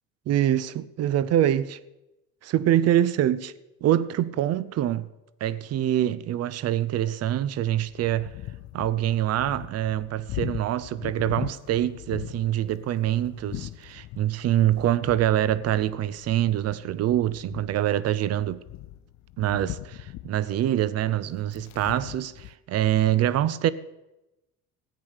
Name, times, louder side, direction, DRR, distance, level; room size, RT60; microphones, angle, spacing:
voice 1, 0.3-1.8 2.4-3.5 3.8-5.1 5.4-8.3 8.7-18.6 19.4-23.7, right 12 dB, 50° right, 0.6 m, -25 dB
sound 1, 7.7-22.5, left 16 dB, 55° left, 0.6 m, -40 dB
14.0 x 8.4 x 6.5 m
cardioid pair, 110°, 33 cm